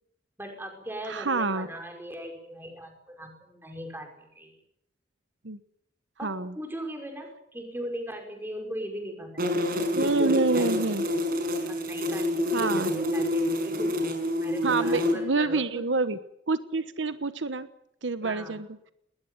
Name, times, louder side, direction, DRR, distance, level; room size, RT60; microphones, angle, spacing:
voice 1, 0.4-4.5 6.2-9.5 10.0-11.1 11.7-14.0 14.4-15.8 18.2-18.6, equal, 10° right, 3 dB, 5.5 m, -39 dB
voice 2, 1.1-1.7 5.4-5.6 6.2-6.5 9.9-11.1 12.5-12.9 14.6-16.2 16.5-17.7 18.0-18.7, right 3 dB, 80° right, 12 dB, 1.1 m, -27 dB
sound 1, 9.4-15.1, left 1 dB, 55° right, 5.7 m, -27 dB
20.5 x 19.5 x 9.2 m, 0.77 s
head